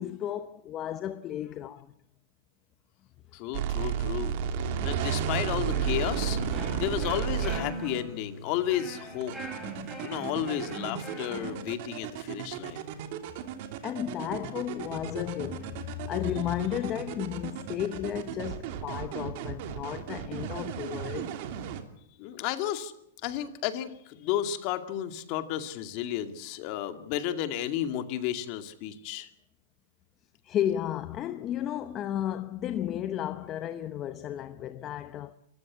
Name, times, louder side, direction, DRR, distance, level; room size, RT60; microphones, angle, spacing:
voice 1, 0.0-1.9 6.6-7.0 13.8-21.3 30.4-35.3, left 11 dB, 30° left, 0.9 m, -33 dB
voice 2, 3.3-4.4 4.8-6.4 6.8-9.3 10.0-12.8 22.2-22.9 23.2-29.3, left 11 dB, 45° left, 2.2 m, -32 dB
sound 1, 3.5-7.6 9.2-21.8, right 8 dB, 50° right, 2.8 m, -33 dB
sound 2, 5.7-11.6, right 1 dB, 5° right, 7.2 m, -40 dB
27.0 x 15.0 x 8.6 m
hypercardioid pair, 145°, 0 cm